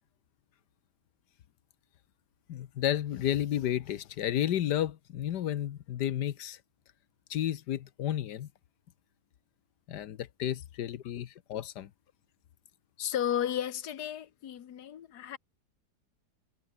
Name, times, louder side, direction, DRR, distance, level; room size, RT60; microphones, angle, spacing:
voice 1, 2.5-6.6 7.3-8.5 9.9-11.9, left 11 dB, 90° left, 1.5 m, -32 dB
voice 2, 13.0-15.4, left 10 dB, 75° left, 1.7 m, -33 dB
omnidirectional pair, 1.7 m